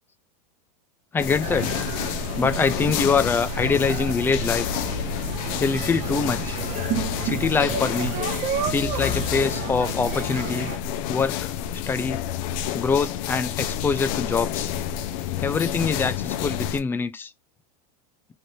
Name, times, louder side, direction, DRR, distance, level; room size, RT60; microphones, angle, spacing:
voice 1, 1.1-1.8 2.4-4.7 5.6-6.6 7.2-8.2 8.7-10.7 11.1-11.5 11.9-12.2 12.7-14.7 15.4-17.3, left 5 dB, 10° left, 0.4 m, -24 dB
sound 1, 1.2-16.8, left 10 dB, 60° left, 0.6 m, -29 dB
sound 2, 1.4-10.8, right 7 dB, 40° right, 0.9 m, -31 dB
3.3 x 2.6 x 4.2 m
supercardioid pair, 140°, 20 cm